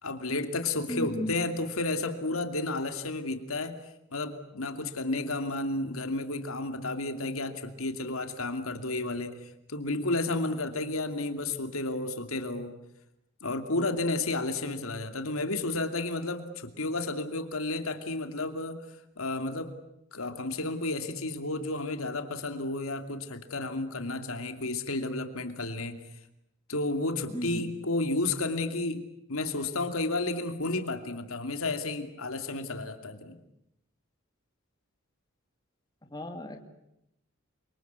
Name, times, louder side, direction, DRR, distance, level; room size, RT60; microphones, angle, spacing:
voice 1, 0.0-3.8 4.1-12.7 13.4-18.8 19.2-19.7 20.1-26.0 26.7-33.4, left 2 dB, 85° left, 7 dB, 2.8 m, -32 dB
voice 2, 0.9-1.3 27.3-27.7 36.1-36.7, equal, 20° left, 5 dB, 2.4 m, -35 dB
29.0 x 24.5 x 8.3 m, 0.82 s
head